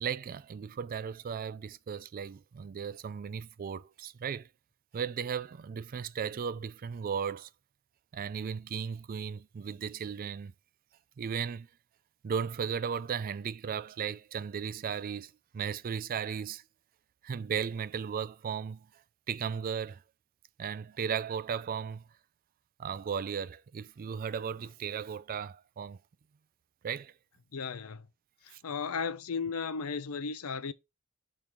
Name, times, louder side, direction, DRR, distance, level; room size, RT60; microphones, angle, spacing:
voice 1, 0.0-4.5 4.9-7.5 8.1-10.5 11.2-11.7 12.2-16.6 17.2-18.9 19.3-20.0 20.6-22.0 22.8-26.0 26.8-27.1 28.5-28.6, right 7 dB, 40° right, 0.3 m, -36 dB
voice 2, 27.5-28.1 28.4-30.7, left 5 dB, 75° left, 0.6 m, -35 dB
6.7 x 3.7 x 4.4 m
head